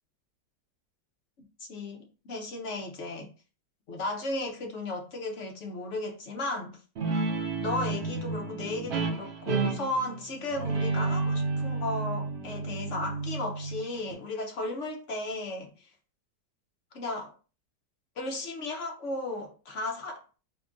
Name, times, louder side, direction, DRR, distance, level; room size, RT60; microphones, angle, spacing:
voice 1, 1.6-3.3 3.9-6.8 7.6-15.9 16.9-17.3 18.2-20.2, left 2 dB, 55° left, 0.9 m, -35 dB
Guitar, 7.0-14.1, right 3 dB, 60° right, 0.6 m, -31 dB
3.6 x 2.3 x 3.7 m
omnidirectional pair, 1.9 m